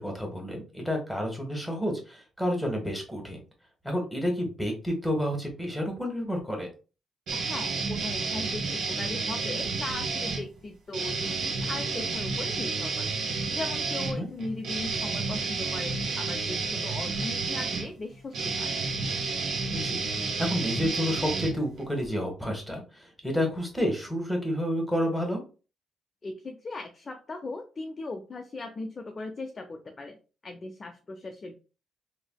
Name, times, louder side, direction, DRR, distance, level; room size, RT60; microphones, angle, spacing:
voice 1, 0.0-3.4 3.8-6.7 14.1-14.3 19.7-20.0 20.4-25.4, equal, ahead, 2 dB, 1.3 m, -30 dB
voice 2, 7.3-13.1 13.5-18.7 26.2-30.2 30.4-31.5, left 2 dB, 40° left, 4 dB, 0.4 m, -38 dB
sound 1, 7.3-10.4 10.9-22.1, right 4 dB, 80° right, 0.9 m, -31 dB
3.3 x 2.7 x 2.2 m, 0.33 s
cardioid pair, 75°, 0 cm